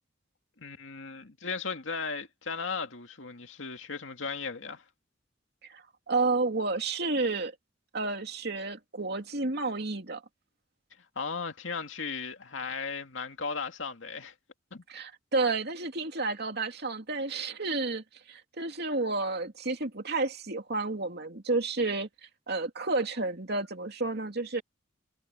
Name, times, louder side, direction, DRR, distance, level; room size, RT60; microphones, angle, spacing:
voice 1, 0.6-4.8 11.2-14.3 14.7-14.8, left 5 dB, 85° left, 2.3 m, -36 dB
voice 2, 5.6-7.5 7.9-10.2 14.9-22.1 22.5-24.6, right 3 dB, 60° right, 2.8 m, -31 dB
head